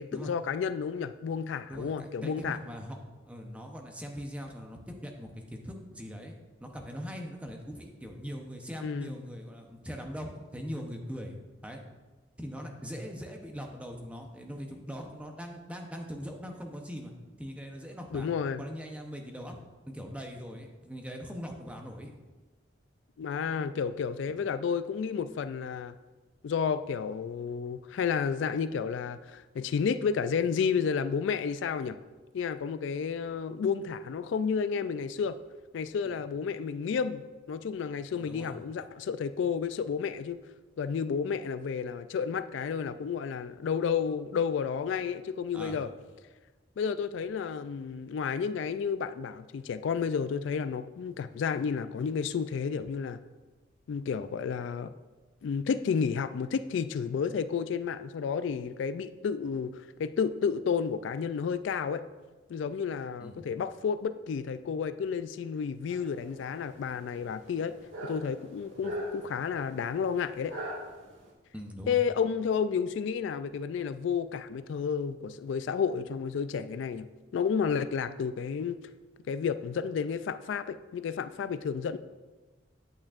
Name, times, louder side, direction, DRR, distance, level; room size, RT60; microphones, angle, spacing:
voice 1, 0.0-2.6 8.8-9.1 18.1-18.6 23.2-25.9 26.4-32.0 32.3-35.4 35.7-37.2 37.5-40.4 40.8-45.9 46.8-53.2 53.9-54.9 55.4-62.0 62.5-67.7 68.0-70.5 71.9-77.1 77.3-78.8 79.3-82.0, left 6 dB, 75° left, 12 dB, 0.3 m, -31 dB
voice 2, 1.7-3.0 3.3-6.3 6.6-11.4 11.6-11.8 12.4-17.1 17.4-18.3 18.6-19.6 19.9-22.1 36.0-36.2 38.1-38.5 45.5-45.8 63.2-63.4 68.8-68.9 71.5-72.0, equal, 5° right, 2 dB, 0.7 m, -41 dB
sound 1, 65.9-71.3, equal, 90° right, 1.7 m, -42 dB
8.7 x 8.5 x 2.5 m, 1.2 s
head